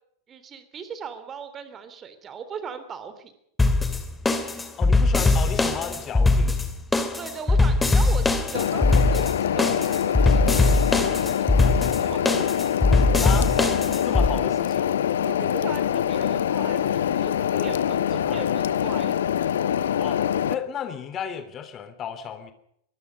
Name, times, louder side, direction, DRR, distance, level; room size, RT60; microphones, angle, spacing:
voice 1, 0.3-3.3 7.2-12.5 15.2-17.3 17.6-19.2, right 6 dB, 25° right, 11 dB, 3.3 m, -39 dB
sound 1, 3.6-14.3, left 3 dB, 10° left, 2.6 m, -21 dB
voice 2, 4.8-6.7 13.2-13.6 14.0-14.9 17.5-17.8 18.2-18.4 20.0-22.5, left 8 dB, 30° left, 10 dB, 3.1 m, -33 dB
sound 2, 8.5-20.5, left 9 dB, 60° left, 1.1 m, -24 dB
24.0 x 20.5 x 5.4 m, 0.71 s
figure-of-eight pair, 90°, 0 cm